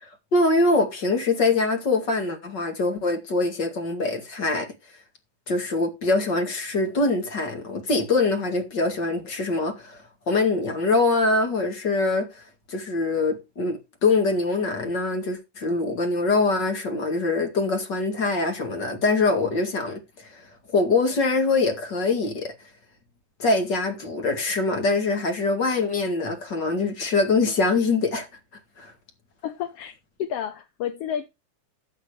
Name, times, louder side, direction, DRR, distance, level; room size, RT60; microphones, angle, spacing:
voice 1, 0.0-4.7 5.5-12.4 12.7-20.4 20.7-22.5 23.4-28.3 28.8-28.9, left 3 dB, 35° left, 2.3 m, -24 dB
voice 2, 29.4-31.3, left 9 dB, 75° left, 1.4 m, -31 dB
13.5 x 7.7 x 3.4 m
omnidirectional pair, 3.8 m